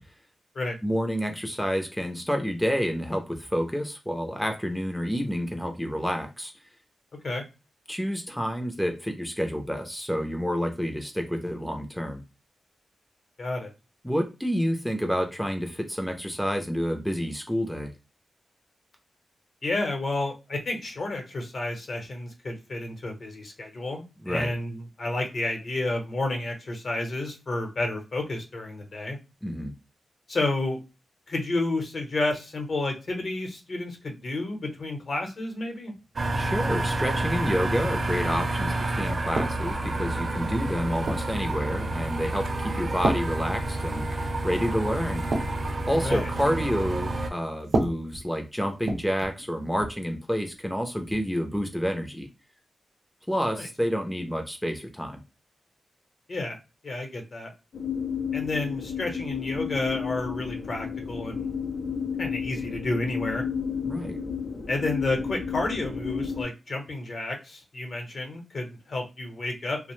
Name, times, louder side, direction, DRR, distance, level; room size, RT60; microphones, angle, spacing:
voice 1, 0.8-6.5 7.9-12.2 14.0-17.9 24.2-24.5 29.4-29.7 36.3-45.3 45.9-52.3 53.3-55.2 63.8-64.2, equal, 5° left, 4 dB, 0.4 m, -29 dB
voice 2, 13.4-13.7 19.6-29.2 30.3-30.8 31.3-35.9 46.0-46.3 53.6-53.7 56.3-56.6 56.8-57.5 58.3-61.5 62.2-63.4 64.7-69.8, left 2 dB, 55° left, 3 dB, 0.8 m, -31 dB
sound 1, 36.2-47.3, right 2 dB, 45° right, 0.5 m, -29 dB
sound 2, 39.4-39.9 40.5-41.4 42.0-42.3 43.0-44.2 44.5-44.7 45.1-46.4 47.6-49.4 49.7-50.0 51.1-51.3, right 2 dB, 80° right, 0.6 m, -31 dB
sound 3, 57.7-66.4, left 6 dB, 85° left, 0.5 m, -32 dB
2.7 x 2.0 x 3.0 m, 0.28 s
wide cardioid pair, 125°, 0 cm